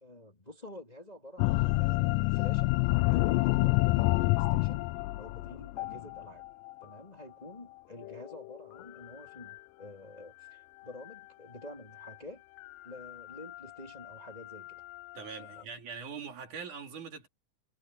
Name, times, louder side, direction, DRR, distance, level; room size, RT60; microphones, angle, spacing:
voice 1, 0.0-4.8 5.2-6.4 6.8-12.4 12.8-14.8 15.4-15.7, left 1 dB, 15° left, 2.3 m, -49 dB
sound 1, 1.4-6.8 8.0-9.1 9.5-9.6 12.0-12.1 12.6-15.6, left 21 dB, 90° left, 2.1 m, -29 dB
voice 2, 15.1-17.3, right 6 dB, 70° right, 4.4 m, -42 dB
omnidirectional pair, 3.7 m